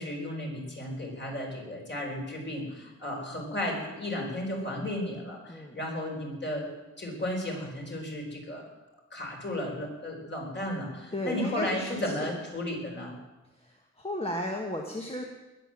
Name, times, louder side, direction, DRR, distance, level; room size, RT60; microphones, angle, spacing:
voice 1, 0.0-6.7 7.0-8.6 9.1-13.1, left 1 dB, 35° left, 0 dB, 4.3 m, -34 dB
voice 2, 11.1-12.3 13.6-15.3, left 1 dB, 20° left, 0 dB, 1.4 m, -34 dB
20.0 x 7.7 x 7.6 m, 1.1 s
wide cardioid pair, 150°, 30 cm